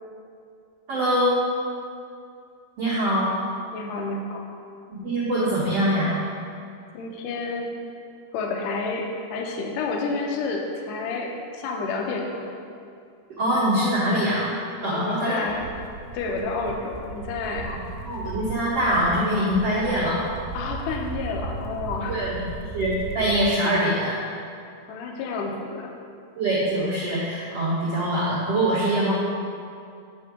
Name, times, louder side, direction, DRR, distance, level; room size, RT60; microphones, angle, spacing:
voice 1, 0.9-1.4 2.8-3.3 5.0-6.1 13.4-14.5 14.8-15.4 17.7-17.8 18.0-20.2 22.1-24.2 26.4-29.1, right 1 dB, 65° right, -9 dB, 1.5 m, -23 dB
voice 2, 3.7-4.4 6.9-7.7 8.3-12.5 14.8-15.7 16.1-17.8 20.5-22.4 24.9-25.9, left 3 dB, 80° left, 1 dB, 1.9 m, -30 dB
sound 1, 15.5-23.5, right 3 dB, 85° right, 2.6 m, -36 dB
9.6 x 3.7 x 4.9 m, 2.4 s
omnidirectional pair, 4.7 m